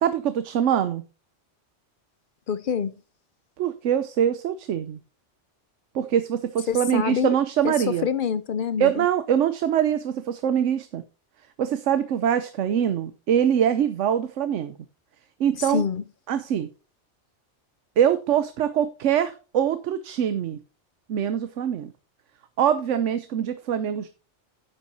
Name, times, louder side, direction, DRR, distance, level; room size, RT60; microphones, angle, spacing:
voice 1, 0.0-1.0 3.6-5.0 5.9-8.1 8.8-11.0 11.6-14.7 15.4-15.8 16.3-16.7 18.0-20.6 21.1-21.9 22.6-24.1, right 9 dB, 80° right, 1.0 m, -23 dB
voice 2, 2.5-3.0 6.7-7.4 7.6-9.1 15.6-16.0, left 7 dB, 55° left, 0.6 m, -26 dB
9.9 x 8.3 x 2.7 m
omnidirectional pair, 1.2 m